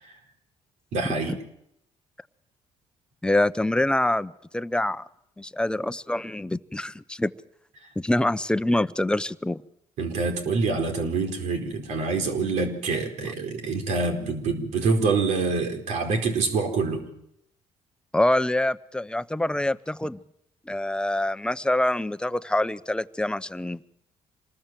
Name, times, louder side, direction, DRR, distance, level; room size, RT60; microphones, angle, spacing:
voice 1, 0.9-1.4 7.8-7.9 10.0-17.0, right 4 dB, 80° right, 5 dB, 4.5 m, -26 dB
voice 2, 3.2-5.0 5.4-7.3 8.0-9.6 18.1-20.2 20.7-23.8, left 1 dB, 5° left, 14 dB, 0.8 m, -25 dB
26.0 x 20.0 x 7.6 m, 0.78 s
cardioid pair, 85°, 12 cm